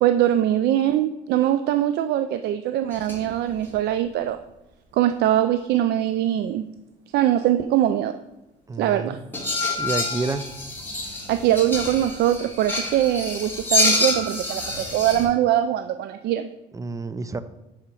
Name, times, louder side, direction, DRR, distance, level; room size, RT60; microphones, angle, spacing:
voice 1, 0.0-4.4 4.9-6.7 7.1-8.2 8.8-9.2 11.3-16.5, right 12 dB, 70° right, 10 dB, 0.4 m, -22 dB
sound 1, 2.9-3.3 3.5-3.7 9.3-15.3, left 2 dB, 10° left, 2.4 m, -27 dB
voice 2, 8.7-9.2 9.8-10.4 16.7-17.4, right 3 dB, 20° right, 13 dB, 0.5 m, -29 dB
5.6 x 5.0 x 6.1 m, 0.95 s
cardioid pair, 95°, 18 cm